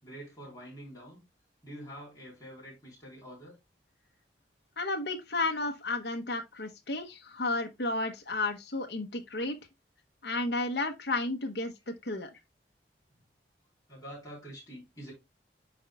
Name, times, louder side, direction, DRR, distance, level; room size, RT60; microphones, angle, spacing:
voice 1, 0.0-1.2 1.6-3.6 13.9-15.1, equal, 20° left, 4.2 m, -46 dB
voice 2, 4.8-9.6 10.2-12.4, left 2 dB, 70° left, 1.0 m, -32 dB
10.0 x 4.4 x 2.4 m
head